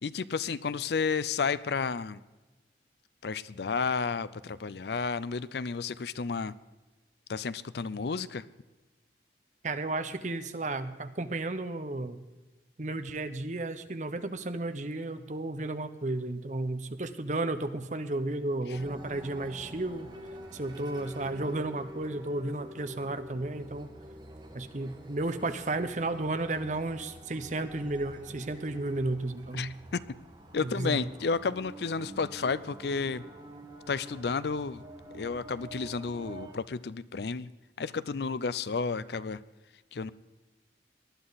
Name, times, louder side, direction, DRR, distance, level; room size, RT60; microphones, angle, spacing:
voice 1, 0.0-2.2 3.2-6.5 7.3-8.4 29.5-30.0 30.5-33.2 33.9-34.8 35.1-37.5 37.8-39.4 39.9-40.1, left 5 dB, 65° left, 17 dB, 0.5 m, -32 dB
voice 2, 9.6-12.2 12.8-20.1 20.5-23.9 24.5-29.8 30.6-31.1, right 2 dB, 40° right, 10 dB, 0.9 m, -33 dB
sound 1, 18.7-36.5, right 1 dB, 25° right, 1.5 m, -48 dB
19.0 x 11.5 x 4.1 m, 1.2 s
head